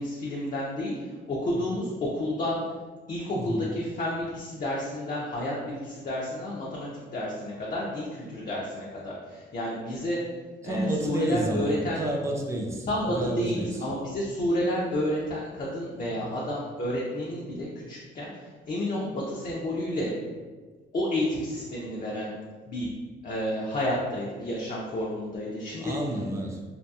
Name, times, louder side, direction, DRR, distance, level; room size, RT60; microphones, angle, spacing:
voice 1, 0.0-2.6 3.1-10.2 10.6-12.0 12.9-20.1 20.9-22.3 22.7-22.9 23.2-25.9, left 1 dB, 40° left, -4 dB, 0.5 m, -30 dB
voice 2, 3.3-3.6 10.6-13.8 16.2-16.3 25.8-26.6, right 1 dB, 15° right, 0 dB, 0.4 m, -30 dB
2.7 x 2.4 x 2.3 m, 1.4 s
cardioid pair, 90°, 20 cm